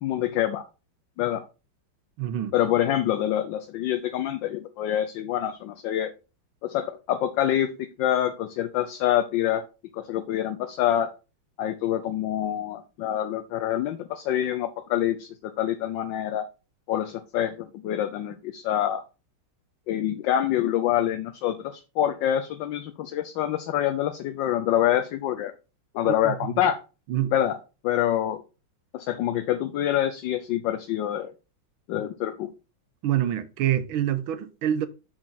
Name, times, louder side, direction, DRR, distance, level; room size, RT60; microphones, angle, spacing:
voice 1, 0.0-0.6 1.2-1.4 2.5-6.1 6.6-9.6 9.9-11.1 11.6-16.5 16.9-19.0 19.9-25.5 25.9-26.8 27.3-27.6 27.8-28.4 28.9-31.3 31.9-32.5, left 11 dB, 70° left, 1.3 m, -26 dB
voice 2, 2.2-2.5 26.0-26.3 27.1-27.3 33.0-34.9, right 11 dB, 80° right, 1.5 m, -26 dB
6.5 x 6.0 x 4.0 m
omnidirectional pair, 2.3 m